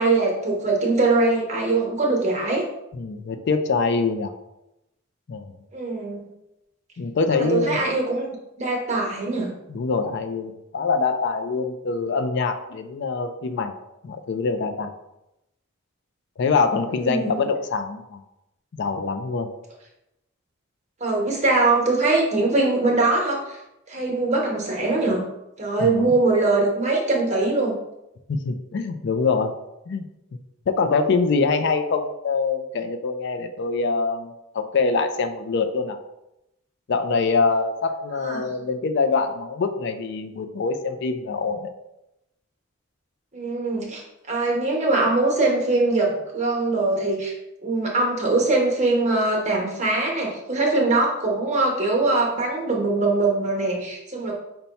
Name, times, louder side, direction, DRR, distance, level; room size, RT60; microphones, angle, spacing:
voice 1, 0.0-2.6 5.7-6.3 7.3-8.2 8.6-9.5 16.9-17.5 21.0-23.6 23.9-25.2 25.6-27.7 38.2-38.5 43.3-47.3 47.6-54.3, right 2 dB, 35° right, -1 dB, 1.0 m, -22 dB
voice 2, 2.9-4.3 5.3-5.5 7.0-7.8 9.7-13.7 14.0-14.9 16.4-18.2 18.8-19.5 25.8-26.1 28.3-29.5 29.9-30.0 30.7-36.0 36.9-41.7, left 4 dB, 55° left, 7 dB, 0.4 m, -24 dB
5.5 x 2.2 x 4.0 m, 0.90 s
head